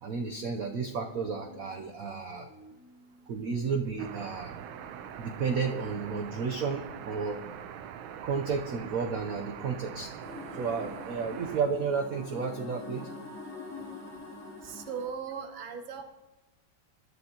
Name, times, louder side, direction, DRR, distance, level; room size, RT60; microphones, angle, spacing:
voice 1, 0.0-2.5 3.3-4.6 5.2-7.4 8.2-10.1 10.5-13.1, right 5 dB, 60° right, 4 dB, 0.9 m, -32 dB
sound 1, 1.0-4.0 4.4-7.4, left 4 dB, 75° left, 2.3 m, -55 dB
sound 2, 4.0-11.6, right 9 dB, 80° right, 1.5 m, -43 dB
sound 3, 10.2-15.0, left 3 dB, 5° left, 3.6 m, -44 dB
voice 2, 14.6-16.0, right 7 dB, 30° right, 5 dB, 0.9 m, -38 dB
22.0 x 11.5 x 2.9 m, 1.1 s
omnidirectional pair, 2.2 m